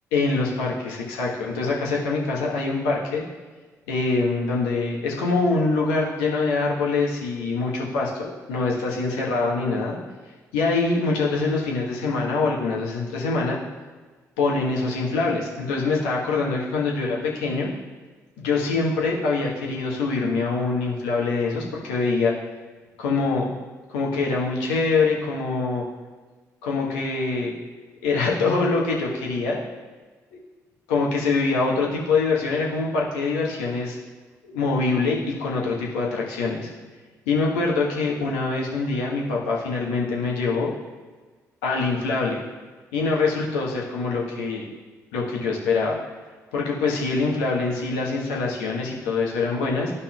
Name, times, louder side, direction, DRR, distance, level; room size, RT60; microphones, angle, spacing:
voice 1, 0.1-3.2 3.9-10.0 10.5-13.6 14.4-17.7 18.4-22.3 23.0-23.4 23.9-25.8 26.6-27.5 28.0-29.6 30.9-34.0 34.5-36.7 37.3-40.7 41.6-42.4 42.9-44.6 45.1-46.0 46.5-49.9, left 3 dB, 75° left, -2 dB, 1.2 m, -24 dB
12.0 x 5.6 x 2.3 m, 1.4 s
figure-of-eight pair, 45°, 9 cm